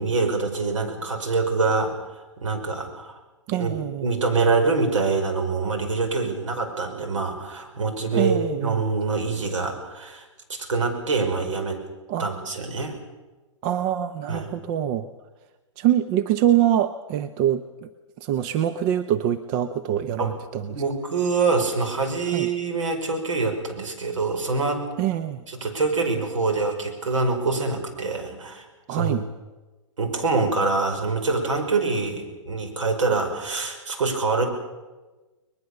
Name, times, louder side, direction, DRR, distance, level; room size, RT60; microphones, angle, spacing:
voice 1, 0.0-1.9 2.4-3.1 3.6-3.8 4.0-11.8 12.2-13.0 14.3-14.5 20.2-20.3 20.6-24.8 25.5-29.2 30.0-34.5, right 4 dB, 75° right, 4 dB, 5.4 m, -25 dB
voice 2, 3.5-4.1 8.1-8.8 12.1-12.3 13.6-15.1 15.8-17.6 18.2-20.7 22.3-22.5 25.0-25.4 28.9-29.2, right 11 dB, 40° right, 9 dB, 0.9 m, -24 dB
22.0 x 21.0 x 6.8 m, 1.2 s
hypercardioid pair, 120°, 16 cm